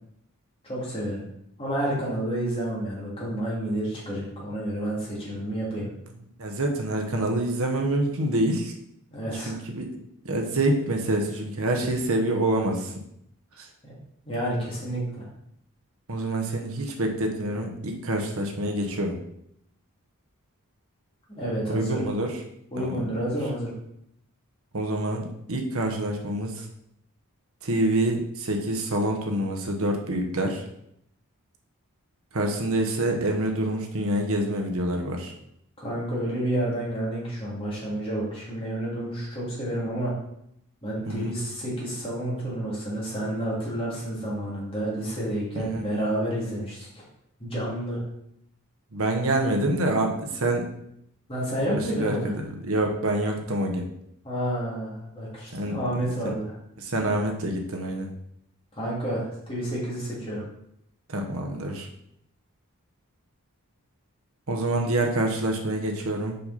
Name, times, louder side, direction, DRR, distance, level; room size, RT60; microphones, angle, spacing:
voice 1, 0.6-1.2 1.6-5.9 9.1-9.5 13.8-13.9 14.2-15.3 21.3-22.1 22.7-23.7 35.8-40.1 40.8-47.0 47.4-48.0 51.3-52.3 54.2-56.5 58.7-60.5, right 1 dB, 25° left, -6 dB, 2.5 m, -30 dB
voice 2, 6.4-8.7 9.5-9.9 10.2-12.9 13.6-13.7 16.1-19.2 21.7-22.3 22.8-23.0 24.7-25.2 25.5-26.7 27.6-30.6 32.3-35.3 41.1-41.3 45.5-45.8 48.9-50.7 51.8-52.1 52.4-53.9 55.5-56.1 56.8-58.1 61.1-61.9 64.5-66.4, right 1 dB, 65° right, 3 dB, 1.1 m, -26 dB
5.6 x 5.3 x 4.2 m, 0.74 s
head